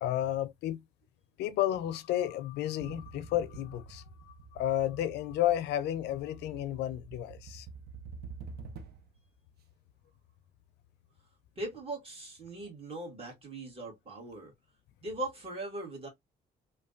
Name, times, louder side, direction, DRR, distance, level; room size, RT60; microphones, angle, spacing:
voice 1, 0.0-0.8 1.4-7.7, left 12 dB, 90° left, 0.4 m, -32 dB
sound 1, 2.8-9.2, right 5 dB, 75° right, 0.5 m, -48 dB
voice 2, 11.6-14.5 15.0-16.1, right 2 dB, 35° right, 1.6 m, -40 dB
3.1 x 2.2 x 2.4 m
cardioid pair, 90°, 17 cm